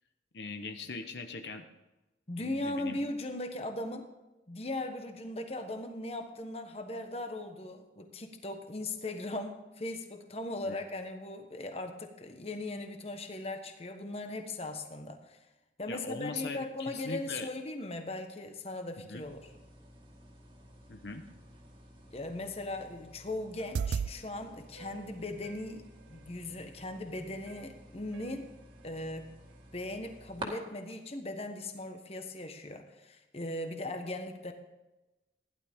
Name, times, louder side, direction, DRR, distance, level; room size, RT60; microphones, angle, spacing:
voice 1, 0.3-1.6 2.4-3.0 10.7-10.8 15.9-17.5 19.0-19.3 20.9-21.2, left 3 dB, 70° left, 6 dB, 1.0 m, -40 dB
voice 2, 2.3-4.1 4.5-15.4 15.8-19.5 22.1-28.5 28.8-29.3 29.7-34.5, left 2 dB, 35° left, 6 dB, 1.2 m, -39 dB
sound 1, 19.2-30.5, right 1 dB, 25° right, 2.1 m, -51 dB
sound 2, 23.6-24.1 24.8-25.7 26.8-26.9 27.5-27.7 28.1-28.4 28.8-28.9, right 6 dB, 75° right, 0.3 m, -37 dB
15.5 x 11.5 x 3.6 m, 1.0 s
head